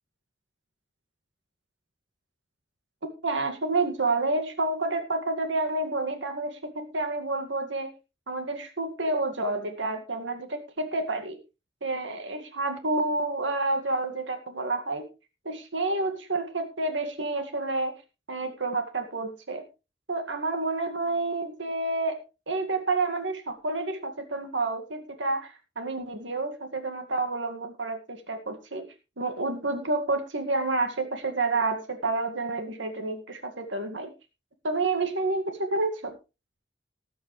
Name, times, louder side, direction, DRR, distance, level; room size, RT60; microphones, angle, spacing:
voice 1, 3.2-7.9 8.3-11.4 11.8-15.1 15.5-17.9 18.3-19.6 20.1-28.9 29.2-34.1 34.6-36.2, right 2 dB, 85° right, 6 dB, 2.1 m, -29 dB
19.0 x 8.5 x 3.3 m, 0.28 s
head